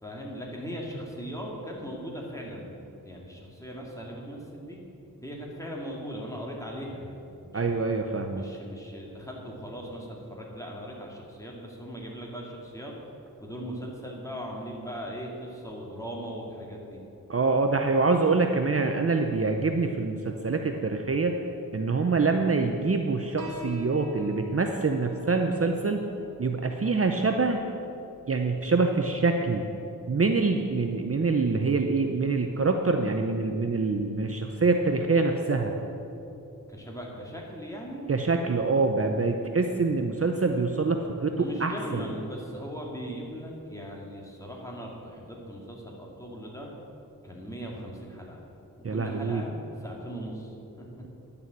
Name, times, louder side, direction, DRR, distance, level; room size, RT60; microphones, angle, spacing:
voice 1, 0.0-2.8 3.0-4.8 5.2-7.8 8.3-12.9 13.4-17.0 36.7-38.1 41.4-46.7 47.2-48.4 48.9-49.5 49.8-50.9, equal, 10° left, -2 dB, 2.1 m, -39 dB
voice 2, 7.5-8.4 17.3-21.3 21.7-26.0 26.4-27.6 28.3-29.7 30.1-35.7 38.1-42.0 48.8-49.4, right 3 dB, 40° right, 4 dB, 0.6 m, -25 dB
Piano, 23.4-30.4, left 2 dB, 70° right, 1.7 m, -45 dB
10.5 x 6.9 x 8.0 m, 2.8 s
wide cardioid pair, 90°, 35 cm